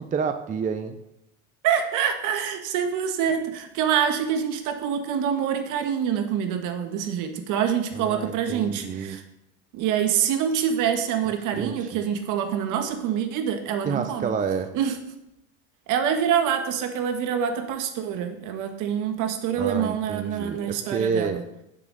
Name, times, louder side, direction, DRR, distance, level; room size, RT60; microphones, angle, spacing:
voice 1, 0.1-0.9 8.0-9.2 11.5-12.1 13.9-14.7 19.6-21.4, right 6 dB, 20° right, 8 dB, 0.6 m, -29 dB
voice 2, 1.6-9.2 9.7-14.3 14.7-15.0 15.9-21.4, right 8 dB, 55° right, 7 dB, 1.5 m, -26 dB
9.4 x 7.7 x 4.0 m, 0.85 s
hypercardioid pair, 90°, 37 cm